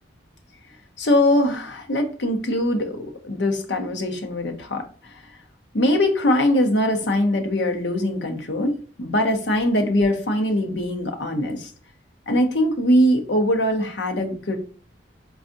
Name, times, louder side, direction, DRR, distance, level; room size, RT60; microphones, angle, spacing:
voice 1, 1.0-4.8 5.7-11.7 12.3-14.6, left 1 dB, 65° left, 4 dB, 0.8 m, -22 dB
4.6 x 2.3 x 2.6 m, 0.40 s
head